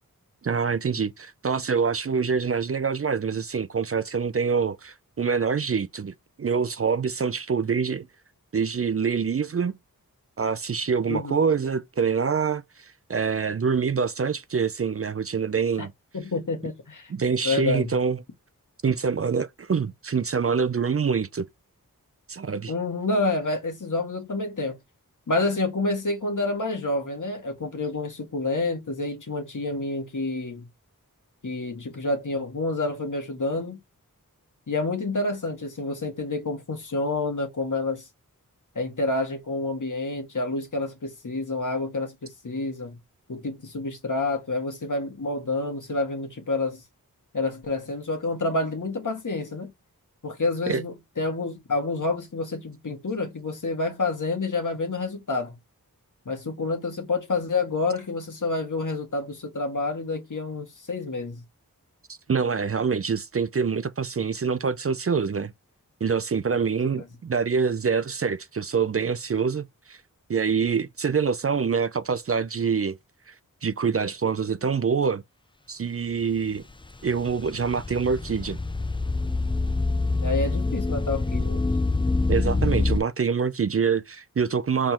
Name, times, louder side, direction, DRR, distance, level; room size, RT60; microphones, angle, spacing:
voice 1, 0.4-8.1 8.5-9.8 10.4-15.9 17.1-18.2 18.8-21.5 22.3-22.7 50.7-50.8 62.1-65.5 66.0-70.0 70.3-73.0 73.3-73.4 73.6-75.2 75.7-76.6 77.0-78.6 82.3-84.9, right 6 dB, 40° right, 0.4 m, -25 dB
voice 2, 11.1-11.4 15.8-15.9 16.1-17.1 17.4-17.9 22.7-24.8 25.3-30.7 31.4-33.8 34.7-38.1 38.7-43.0 43.3-46.8 47.3-49.7 50.2-55.6 56.2-61.4 80.2-81.6, left 3 dB, 60° left, 1.6 m, -28 dB
sound 1, 76.2-83.0, left 3 dB, 15° left, 0.4 m, -26 dB
4.3 x 3.6 x 3.0 m
wide cardioid pair, 70°, 35 cm